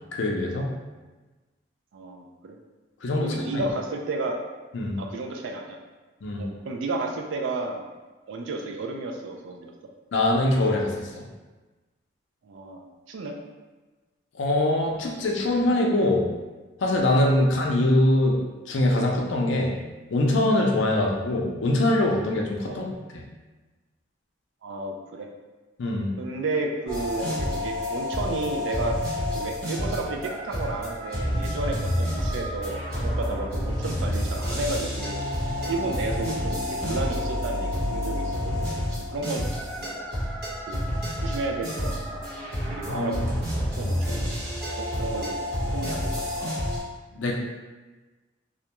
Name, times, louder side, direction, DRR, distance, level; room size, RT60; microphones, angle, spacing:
voice 1, 0.1-0.7 3.0-3.6 4.7-5.0 6.2-6.4 10.1-11.2 14.4-16.3 16.8-18.4 18.7-19.8 20.1-23.2 25.8-26.1 42.9-43.2 47.1-47.4, left 1 dB, 70° left, -1 dB, 0.4 m, -23 dB
voice 2, 1.9-2.6 3.2-4.4 5.0-5.8 6.4-7.8 8.3-9.7 12.4-13.3 22.7-22.8 24.6-25.3 26.2-29.0 29.3-35.2 35.6-39.5 39.8-39.9 40.7-40.8 41.2-42.2 42.6-44.3 44.8-46.5, right 3 dB, 75° right, 2 dB, 0.4 m, -32 dB
sound 1, 26.9-46.8, left 1 dB, 50° right, 0.9 m, -29 dB
2.4 x 2.1 x 2.9 m, 1.2 s
head